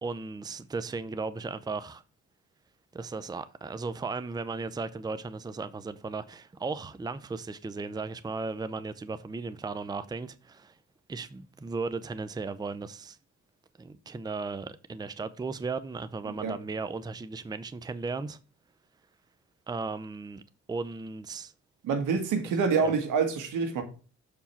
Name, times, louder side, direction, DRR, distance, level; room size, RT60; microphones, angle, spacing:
voice 1, 0.0-2.0 2.9-10.7 11.1-13.2 13.8-18.4 19.7-20.4 20.7-21.5 22.8-22.9, right 4 dB, 15° right, 0.5 m, -36 dB
voice 2, 21.8-23.8, right 5 dB, 85° right, 1.7 m, -26 dB
6.9 x 4.7 x 4.4 m
cardioid pair, 90°, 30 cm